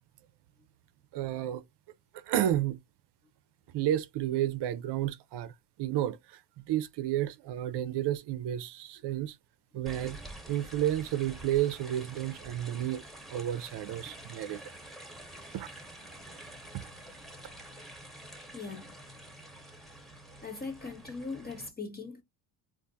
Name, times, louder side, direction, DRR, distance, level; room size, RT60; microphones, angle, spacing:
voice 1, 1.1-1.6 2.3-2.8 3.7-5.5 5.8-6.2 6.7-9.4 9.7-10.2 10.5-13.0 13.3-14.6 15.5-15.7 16.7-16.8, right 12 dB, 55° right, 0.6 m, -31 dB
sound 1, 9.9-21.7, right 1 dB, ahead, 1.0 m, -48 dB
voice 2, 18.5-18.9 20.4-22.2, left 4 dB, 20° left, 0.6 m, -40 dB
3.5 x 2.6 x 2.6 m
cardioid pair, 120°, 48 cm